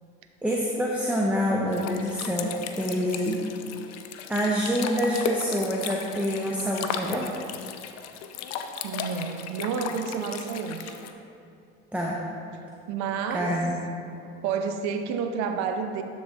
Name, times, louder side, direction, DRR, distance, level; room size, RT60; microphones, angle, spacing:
voice 1, 0.4-3.4 4.3-7.3 11.9-12.2 13.3-13.9, equal, 5° right, -3 dB, 0.8 m, -26 dB
sound 1, 1.7-11.1, left 7 dB, 60° left, 0.6 m, -36 dB
voice 2, 8.8-11.0 12.9-13.6 14.4-16.0, right 6 dB, 70° right, 7 dB, 0.7 m, -30 dB
12.0 x 4.0 x 3.5 m, 2.6 s
hypercardioid pair, 70°, 30 cm